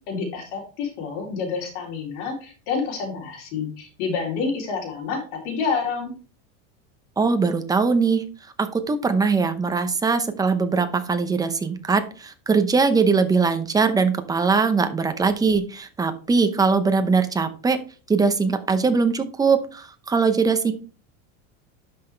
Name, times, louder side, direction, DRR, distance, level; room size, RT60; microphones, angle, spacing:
voice 1, 0.1-6.1, left 5 dB, 65° left, 0 dB, 3.5 m, -28 dB
voice 2, 7.2-8.2 8.6-17.8 18.1-20.7, right 4 dB, 10° right, 8 dB, 0.7 m, -21 dB
11.0 x 5.9 x 3.3 m, 0.36 s
supercardioid pair, 155°, 37 cm